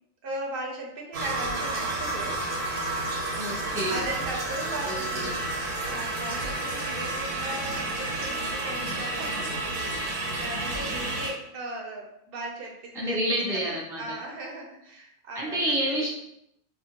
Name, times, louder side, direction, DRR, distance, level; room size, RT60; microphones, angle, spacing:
voice 1, 0.2-2.4 3.9-5.6 5.8-10.1 10.4-16.1, right 2 dB, 55° right, 0 dB, 0.8 m, -37 dB
sound 1, 1.1-11.3, right 2 dB, 90° right, 1.1 m, -31 dB
voice 2, 3.3-4.0 4.9-5.3 12.9-14.2 15.3-16.1, right 1 dB, 5° right, -5 dB, 0.4 m, -29 dB
2.6 x 2.5 x 2.8 m, 0.79 s
omnidirectional pair, 1.2 m